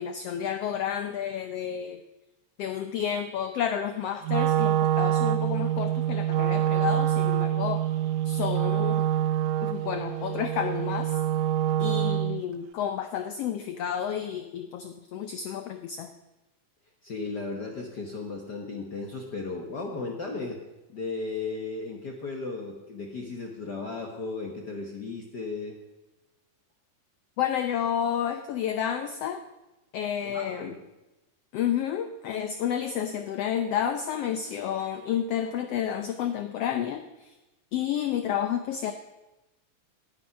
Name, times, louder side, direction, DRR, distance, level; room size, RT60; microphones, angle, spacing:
voice 1, 0.0-2.0 2.6-7.8 8.2-9.1 9.6-11.2 11.8-16.1 27.4-29.4 29.9-30.7 31.5-37.3 37.7-38.9, left 9 dB, 90° left, 8 dB, 1.3 m, -30 dB
Wind instrument woodwind instrument, 4.2-12.4, right 12 dB, 85° right, 2.1 m, -26 dB
voice 2, 17.0-20.6 20.9-25.8 30.2-30.8, left 3 dB, 60° left, 1 dB, 1.1 m, -35 dB
18.0 x 7.1 x 5.7 m, 1.0 s
omnidirectional pair, 3.6 m